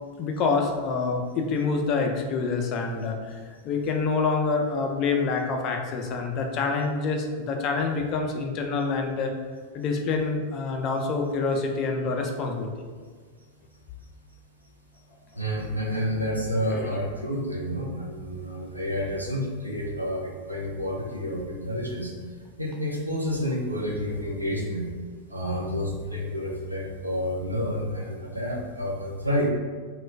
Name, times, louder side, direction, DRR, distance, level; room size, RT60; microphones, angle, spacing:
voice 1, 0.2-3.2 3.5-9.3 9.7-12.7 16.7-16.9, left 4 dB, 35° left, 2 dB, 0.4 m, -27 dB
voice 2, 15.3-22.1 22.6-24.9 25.3-29.5, equal, 85° right, -2 dB, 0.4 m, -29 dB
2.2 x 2.2 x 3.3 m, 1.5 s
figure-of-eight pair, 90°, 0 cm